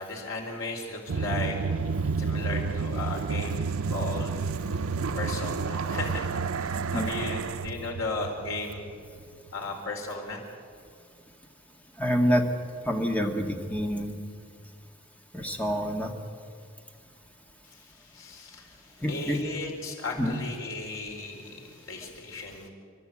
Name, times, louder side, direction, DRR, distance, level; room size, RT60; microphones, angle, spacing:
voice 1, 0.0-1.6 2.2-4.4 5.1-6.3 6.6-8.9 9.5-10.4 18.0-22.7, left 2 dB, 70° left, 1 dB, 4.3 m, -35 dB
sound 1, 1.1-9.2, right 4 dB, 90° right, 0.6 m, -30 dB
voice 2, 12.0-12.5 12.9-14.2 15.3-16.1 19.0-19.4 20.2-20.4, equal, 5° left, 3 dB, 1.7 m, -27 dB
30.0 x 12.0 x 8.5 m, 2.2 s
head